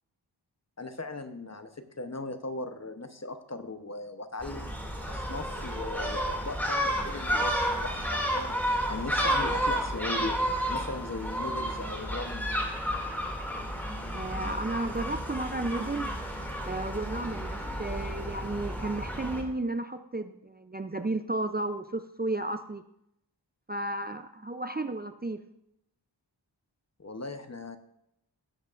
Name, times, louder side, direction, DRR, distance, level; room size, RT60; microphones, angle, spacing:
voice 1, 0.8-10.4 10.7-12.5 27.0-27.8, left 2 dB, 35° left, 8 dB, 0.9 m, -38 dB
Gull seagull, 4.4-19.4, equal, 5° left, 2.4 m, -31 dB
voice 2, 14.1-16.1 16.6-22.8 23.7-25.4, right 2 dB, 20° right, 8 dB, 0.5 m, -33 dB
16.5 x 8.1 x 2.5 m, 0.79 s
wide cardioid pair, 50°, 45 cm